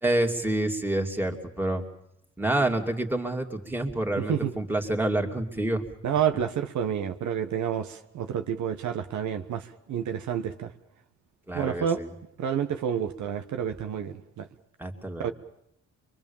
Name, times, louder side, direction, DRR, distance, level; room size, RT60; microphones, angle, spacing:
voice 1, 0.0-1.9 2.4-5.8 11.5-12.1 14.8-15.3, right 1 dB, 5° right, 2 dB, 2.7 m, -28 dB
voice 2, 4.2-4.5 6.0-10.7 11.5-12.0 12.4-14.5 15.2-15.3, right 8 dB, 70° right, 7 dB, 1.3 m, -29 dB
24.0 x 23.5 x 7.2 m, 0.77 s
cardioid pair, 90°, 30 cm